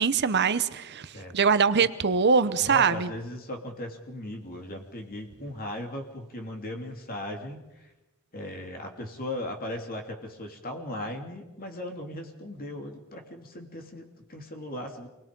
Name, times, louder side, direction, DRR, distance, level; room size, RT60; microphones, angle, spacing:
voice 1, 0.0-3.1, right 5 dB, 50° right, 13 dB, 0.8 m, -23 dB
voice 2, 2.6-7.9 8.3-15.1, left 1 dB, 45° left, 3 dB, 2.9 m, -38 dB
27.0 x 21.0 x 5.3 m, 1.0 s
head